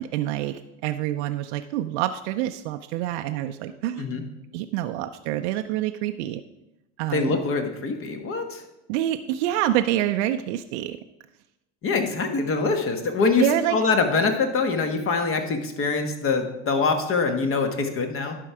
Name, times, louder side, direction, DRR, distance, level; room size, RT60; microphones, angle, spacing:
voice 1, 0.0-4.1 4.5-6.4 7.0-7.4 8.9-11.0 13.4-13.8, right 12 dB, 65° right, 7 dB, 0.5 m, -26 dB
voice 2, 7.1-8.6 11.8-13.4 13.7-18.4, left 4 dB, 35° left, 6 dB, 1.4 m, -24 dB
11.5 x 4.6 x 4.7 m, 0.93 s
hypercardioid pair, 100°, 36 cm